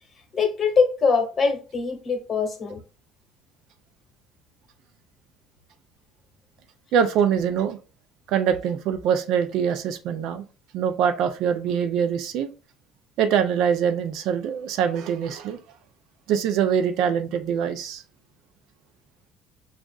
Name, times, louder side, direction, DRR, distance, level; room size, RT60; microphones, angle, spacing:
voice 1, 0.3-2.8, left 5 dB, 30° left, 1.0 m, -23 dB
voice 2, 6.9-7.8 8.3-10.4 10.7-12.5 13.2-15.6 16.3-18.0, right 8 dB, 70° right, 0.5 m, -23 dB
6.2 x 2.4 x 2.3 m
cardioid pair, 140°, 0 cm